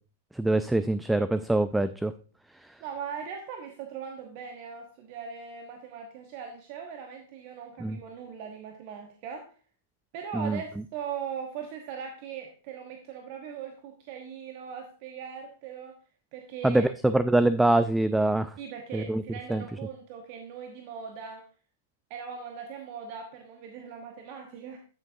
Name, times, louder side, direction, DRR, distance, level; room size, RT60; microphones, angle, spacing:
voice 1, 0.3-2.1 7.8-8.0 10.3-10.6 16.6-18.5 18.9-19.2 19.5-19.6, right 2 dB, 5° right, 14 dB, 0.3 m, -24 dB
voice 2, 2.8-9.5 10.1-16.0 16.3-16.9 18.6-21.5 22.1-24.8, right 7 dB, 45° right, 4 dB, 1.1 m, -40 dB
13.0 x 6.9 x 2.6 m, 0.39 s
figure-of-eight pair, 100°, 0 cm